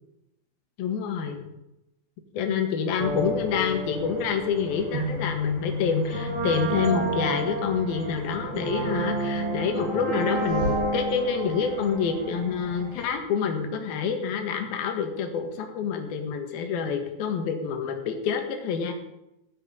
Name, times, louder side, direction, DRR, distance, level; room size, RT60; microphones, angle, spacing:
voice 1, 0.8-1.5 2.3-18.9, left 6 dB, 70° left, 4 dB, 3.4 m, -27 dB
sound 1, 3.0-13.1, equal, 65° right, 4.8 m, -30 dB
15.5 x 7.0 x 9.7 m, 0.89 s
omnidirectional pair, 4.5 m